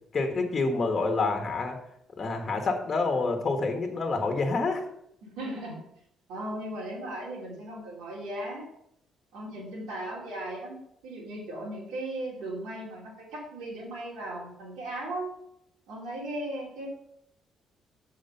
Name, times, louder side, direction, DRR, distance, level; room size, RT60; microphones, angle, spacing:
voice 1, 0.1-1.8 2.2-4.9, left 3 dB, 35° left, 3 dB, 1.3 m, -27 dB
voice 2, 5.2-5.8 6.3-8.7 9.3-15.3 15.9-16.9, right 1 dB, 90° right, -7 dB, 2.8 m, -37 dB
7.2 x 4.9 x 5.4 m, 0.74 s
cardioid pair, 100°, 0 cm